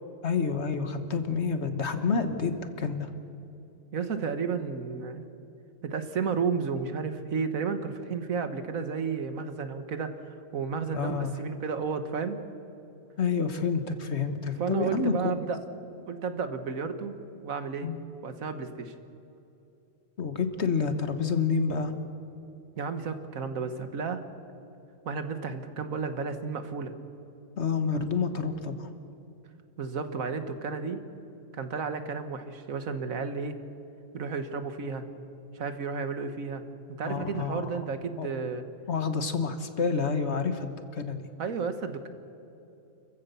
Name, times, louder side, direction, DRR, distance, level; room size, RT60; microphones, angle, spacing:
voice 1, 0.2-3.1 10.9-11.3 13.2-15.1 17.8-18.0 20.2-21.9 27.6-28.9 37.0-37.8 38.2-38.3 38.9-41.3, left 5 dB, 55° left, 8 dB, 1.6 m, -29 dB
voice 2, 3.9-5.2 5.8-12.4 14.6-15.6 16.1-17.1 17.4-17.9 18.2-18.9 22.8-24.2 25.1-26.9 29.8-31.0 31.5-33.6 34.1-35.0 35.6-36.6 37.0-38.7 41.4-42.1, right 5 dB, 90° right, 9 dB, 1.8 m, -32 dB
29.5 x 15.0 x 6.9 m, 2.9 s
omnidirectional pair, 1.4 m